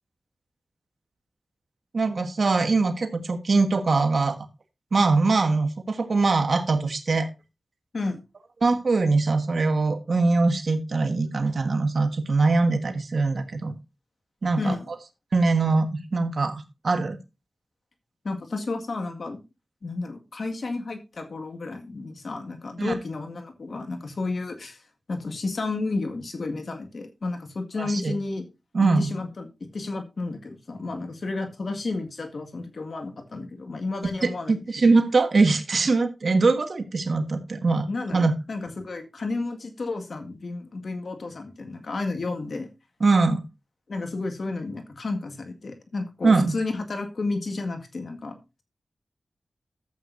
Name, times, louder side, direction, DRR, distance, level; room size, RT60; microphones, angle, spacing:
voice 1, 1.9-4.4 4.9-7.3 8.6-13.7 14.4-14.7 15.3-17.2 22.8-22.9 27.8-28.2 28.7-29.1 34.2-37.9 38.1-38.3 43.0-43.4 46.2-46.5, right 3 dB, 70° right, 7 dB, 1.5 m, -22 dB
voice 2, 14.6-14.9 18.2-19.4 19.8-24.8 25.1-28.5 28.8-34.9 37.9-42.7 43.9-48.6, left 3 dB, 70° left, 6 dB, 1.9 m, -32 dB
12.5 x 8.1 x 2.6 m, 0.26 s
cardioid pair, 50°, 0 cm